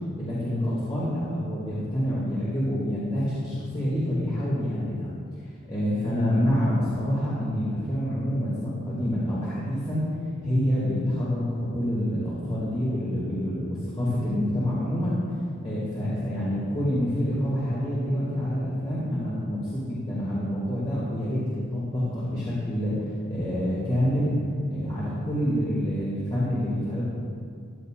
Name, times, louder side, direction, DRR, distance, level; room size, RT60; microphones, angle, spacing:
voice 1, 0.1-5.1 5.7-10.0 10.4-15.2 15.6-22.9 23.3-24.3 24.7-27.2, equal, 25° left, -10 dB, 2.5 m, -27 dB
15.5 x 11.0 x 2.5 m, 2.3 s
head